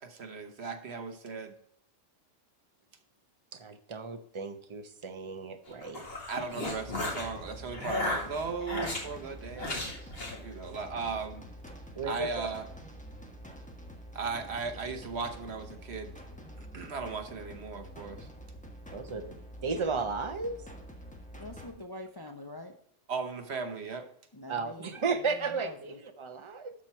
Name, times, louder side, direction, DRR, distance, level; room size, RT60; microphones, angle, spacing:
voice 1, 0.0-1.5 6.3-10.1 10.4-11.4 12.0-12.7 14.1-16.1 16.6-18.3 23.1-24.1, right 4 dB, 60° right, 7 dB, 1.3 m, -37 dB
voice 2, 3.5-6.1 12.0-12.5 18.9-20.6 24.5-26.7, right 4 dB, 30° right, 7 dB, 0.8 m, -34 dB
sound 1, 5.7-7.3 7.7-9.0 9.6-10.4, left 2 dB, 50° left, 2.3 m, -34 dB
sound 2, 6.6-21.7, equal, 5° left, 1.2 m, -47 dB
voice 3, 21.3-22.8 24.3-25.0 25.6-26.0, left 1 dB, 25° left, 5 dB, 0.5 m, -45 dB
12.0 x 4.5 x 4.5 m, 0.69 s
omnidirectional pair, 1.3 m